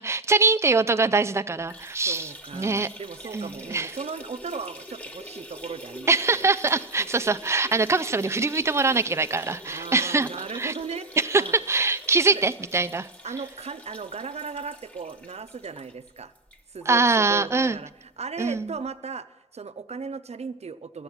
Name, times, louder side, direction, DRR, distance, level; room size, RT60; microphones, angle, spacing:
voice 1, 0.0-2.9 3.3-4.0 6.1-10.3 10.5-10.7 11.2-13.1 16.9-17.8 18.4-18.7, right 3 dB, 25° right, 11 dB, 0.4 m, -23 dB
sound 1, 1.6-17.0 17.4-17.5 17.8-17.9 18.9-19.0, left 1 dB, 15° left, 1.2 m, -44 dB
voice 2, 2.1-6.1 6.4-6.5 7.0-7.1 9.7-11.1 11.4-11.5 12.3-12.4 13.2-16.3 16.7-19.3 19.5-21.0, right 5 dB, 90° right, 11 dB, 0.5 m, -36 dB
12.0 x 7.9 x 7.2 m, 1.0 s
wide cardioid pair, 60°, 11 cm